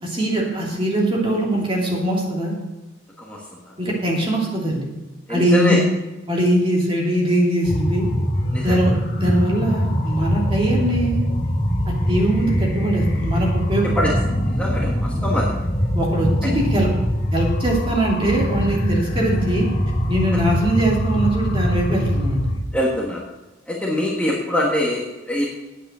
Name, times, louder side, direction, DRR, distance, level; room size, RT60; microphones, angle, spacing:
voice 1, 0.0-2.5 3.8-4.9 5.3-5.9 6.3-8.0 8.6-11.2 12.1-13.9 15.1-15.2 15.9-16.9 17.3-19.7 20.1-22.4, right 1 dB, 25° right, -2 dB, 2.9 m, -21 dB
voice 2, 5.3-5.8 8.5-8.8 14.0-14.1 14.6-15.5 22.7-23.3 23.7-25.5, left 1 dB, 5° left, -4 dB, 1.5 m, -23 dB
sound 1, 7.6-22.6, equal, 45° left, 3.2 m, -22 dB
9.2 x 8.2 x 6.8 m, 1.1 s
head